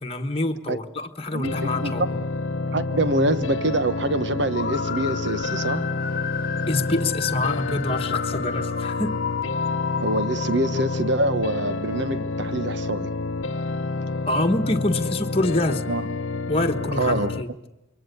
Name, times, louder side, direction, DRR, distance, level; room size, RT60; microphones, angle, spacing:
voice 1, 0.0-2.2 6.7-9.2 14.2-15.8 16.5-17.5, left 2 dB, 30° left, 3 dB, 1.4 m, -26 dB
voice 2, 1.3-2.1 2.7-5.9 10.0-13.1 15.9-16.1 16.9-17.3, right 1 dB, 60° right, 12 dB, 1.2 m, -25 dB
sound 1, 1.4-17.4, left 3 dB, 75° left, 0.8 m, -29 dB
sound 2, 4.5-11.0, left 7 dB, 45° left, 0.9 m, -32 dB
27.5 x 23.0 x 6.9 m, 0.96 s
head